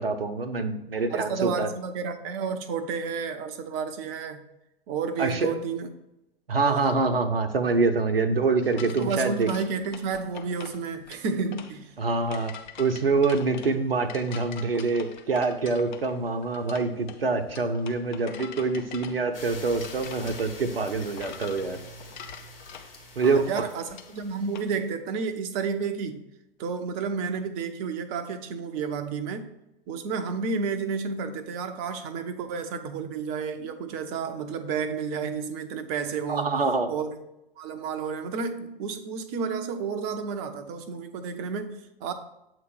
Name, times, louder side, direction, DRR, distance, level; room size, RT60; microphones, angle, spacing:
voice 1, 0.0-1.7 5.2-5.5 6.5-9.5 12.0-12.5 12.8-21.8 23.2-23.4 36.3-36.9, right 3 dB, 75° right, 7 dB, 0.7 m, -25 dB
voice 2, 1.1-4.4 4.9-5.9 6.6-7.0 8.8-11.9 23.2-26.2 26.6-29.5 29.9-37.2 37.6-42.1, right 5 dB, 25° right, 7 dB, 0.5 m, -31 dB
sound 1, 8.6-24.7, left 7 dB, 50° left, 0.7 m, -45 dB
sound 2, 19.3-24.9, left 2 dB, 75° left, 1.6 m, -45 dB
7.7 x 3.0 x 5.3 m, 0.89 s
figure-of-eight pair, 105°, 29 cm